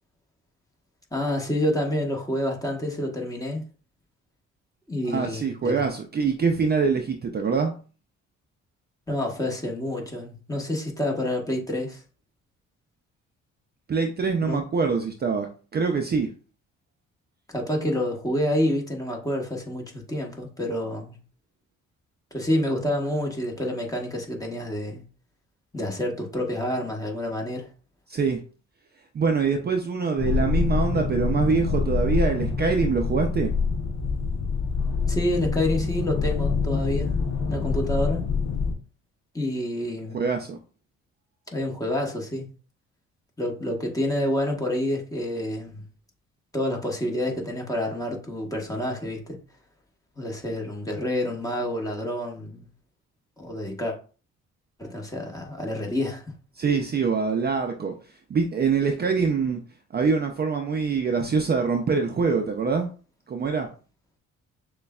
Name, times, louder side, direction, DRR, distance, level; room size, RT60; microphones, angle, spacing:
voice 1, 1.1-3.6 4.9-5.9 9.1-12.0 14.5-14.6 17.5-21.2 22.3-25.0 25.7-27.7 35.1-37.2 37.5-38.2 39.3-40.2 41.5-42.5 43.4-45.8 46.5-49.4 50.2-52.7 53.4-54.0 54.8-56.2, left 1 dB, 10° left, 1.2 m, -28 dB
voice 2, 5.0-7.7 13.9-16.3 28.1-28.4 29.1-33.6 40.1-40.6 56.6-57.9 58.3-59.6 59.9-62.9 63.3-63.7, right 5 dB, 35° right, 0.5 m, -24 dB
sound 1, 30.2-38.7, left 5 dB, 65° left, 0.9 m, -26 dB
6.4 x 2.3 x 2.3 m
cardioid pair, 90°, 30 cm